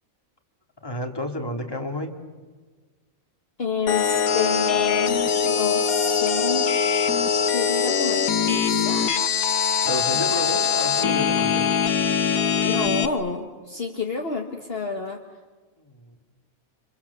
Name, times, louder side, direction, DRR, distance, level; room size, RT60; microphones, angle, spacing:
voice 1, 0.8-2.1 9.8-11.7 15.8-16.2, left 1 dB, 15° left, 3 dB, 2.7 m, -30 dB
voice 2, 3.6-6.7 7.5-9.2 12.3-15.2, left 4 dB, 45° left, 3 dB, 1.7 m, -30 dB
sound 1, 3.9-13.1, left 7 dB, 85° left, 1.7 m, -22 dB
29.5 x 27.0 x 7.1 m, 1.3 s
omnidirectional pair, 1.5 m